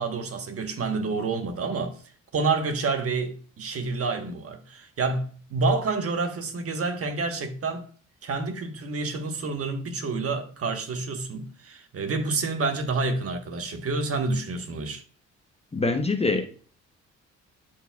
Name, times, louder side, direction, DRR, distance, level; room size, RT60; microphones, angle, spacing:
voice 1, 0.0-2.0 2.3-7.9 8.2-15.0, right 3 dB, 50° right, 1.3 m, -28 dB
voice 2, 15.7-16.5, left 3 dB, 20° left, 0.9 m, -24 dB
13.5 x 4.7 x 2.3 m
cardioid pair, 90°, 30 cm